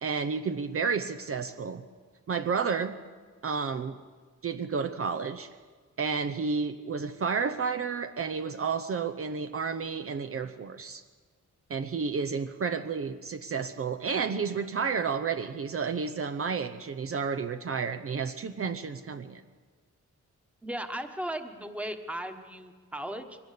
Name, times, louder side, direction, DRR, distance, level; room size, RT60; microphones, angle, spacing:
voice 1, 0.0-1.8 2.3-3.0 3.4-4.0 4.4-5.5 6.0-11.0 11.7-19.4, right 5 dB, 45° right, 9 dB, 0.8 m, -31 dB
voice 2, 20.6-23.4, right 1 dB, 5° right, 6 dB, 1.4 m, -36 dB
23.0 x 19.0 x 8.4 m, 1.5 s
wide cardioid pair, 150°, 30 cm